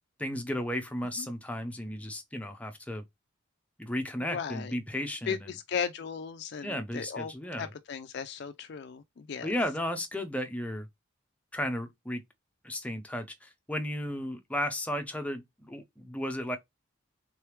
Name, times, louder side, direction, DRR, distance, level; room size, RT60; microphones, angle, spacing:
voice 1, 0.2-3.0 3.8-5.4 6.6-7.7 9.4-10.9 11.5-12.2 12.6-16.6, left 1 dB, 5° left, 0.6 m, -34 dB
voice 2, 4.2-4.7 5.3-9.5, left 6 dB, 55° left, 0.4 m, -36 dB
3.7 x 3.3 x 3.1 m
head